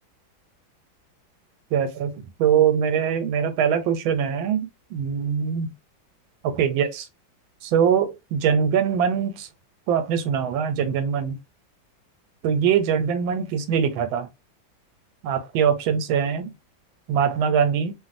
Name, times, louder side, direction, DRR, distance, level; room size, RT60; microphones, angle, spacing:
voice 1, 1.7-2.1 2.4-5.7 6.4-7.0 7.6-9.5 9.9-11.4 12.4-14.3 15.2-16.5 17.1-17.9, right 7 dB, 90° right, 1.4 m, -22 dB
3.0 x 2.5 x 2.5 m
omnidirectional pair, 2.2 m